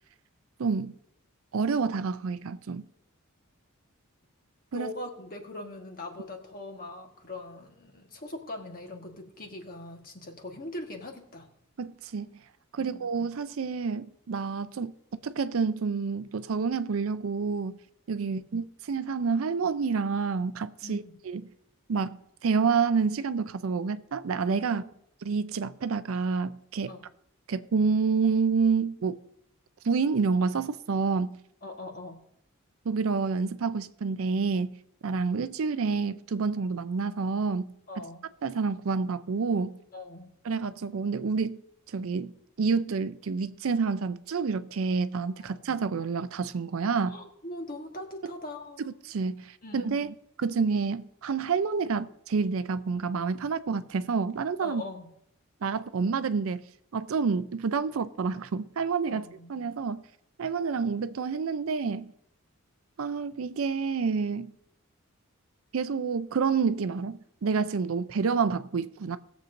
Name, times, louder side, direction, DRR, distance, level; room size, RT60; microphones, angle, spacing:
voice 1, 0.6-0.9 1.5-2.8 4.7-4.9 11.8-12.3 12.7-14.9 15.2-17.8 18.1-21.4 21.9-24.8 25.3-26.9 27.5-29.2 29.8-31.4 32.9-34.8 35.0-37.7 38.4-39.8 40.4-41.6 41.9-42.3 42.6-47.2 49.1-54.8 55.6-56.6 56.9-60.0 60.4-62.1 63.0-64.5 65.7-69.2, right 5 dB, 70° right, 0.5 m, -28 dB
voice 2, 4.7-11.5 12.8-13.1 20.8-21.1 24.7-24.9 26.9-27.0 31.6-32.2 37.9-38.2 39.9-40.3 45.4-45.6 47.1-48.9 49.6-50.0 54.6-55.1 59.1-59.5, left 1 dB, 40° left, 1.4 m, -41 dB
19.5 x 7.2 x 2.6 m
head